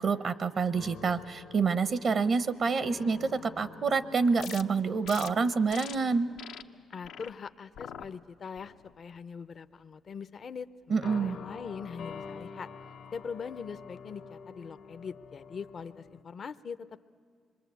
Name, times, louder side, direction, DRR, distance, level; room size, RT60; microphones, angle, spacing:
voice 1, 0.0-6.3 10.9-11.4, right 5 dB, 55° right, 14 dB, 0.7 m, -27 dB
sound 1, 0.7-6.8 7.2-7.4 8.4-9.1 11.0-16.2, left 6 dB, 75° left, 1.3 m, -48 dB
sound 2, 4.4-4.6 5.0-5.3 5.7-5.9 6.4-6.6 7.0-7.3 7.7-8.1 8.6-8.9, left 8 dB, 90° left, 0.9 m, -43 dB
voice 2, 6.9-12.7 13.1-17.0, left 6 dB, 50° left, 12 dB, 0.6 m, -42 dB
26.0 x 22.5 x 8.3 m, 2.3 s
cardioid pair, 90°, 0 cm